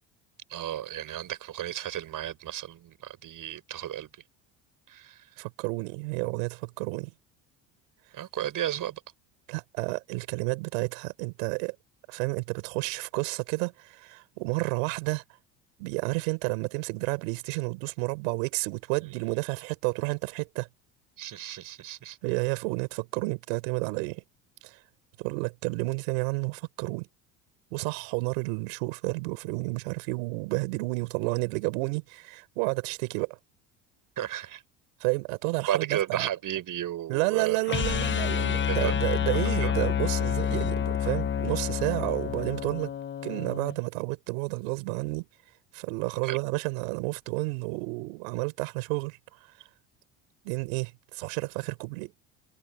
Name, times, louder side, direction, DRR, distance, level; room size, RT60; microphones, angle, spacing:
voice 1, 0.5-4.1 4.9-5.3 8.1-9.0 19.0-19.1 21.2-22.2 34.2-34.6 35.7-37.6 38.7-38.9 39.3-39.7 46.2-46.4, right 12 dB, 55° right, 6.6 m, -33 dB
voice 2, 5.4-7.1 9.5-11.7 12.1-15.2 15.8-20.7 22.2-24.2 24.6-24.8 25.2-27.1 27.7-33.4 35.0-36.3 37.1-42.9 43.2-45.3 45.7-49.2 50.4-52.1, right 29 dB, 85° right, 4.4 m, -31 dB
sound 1, 37.7-43.8, left 8 dB, 30° left, 1.0 m, -28 dB
supercardioid pair, 95°, 39 cm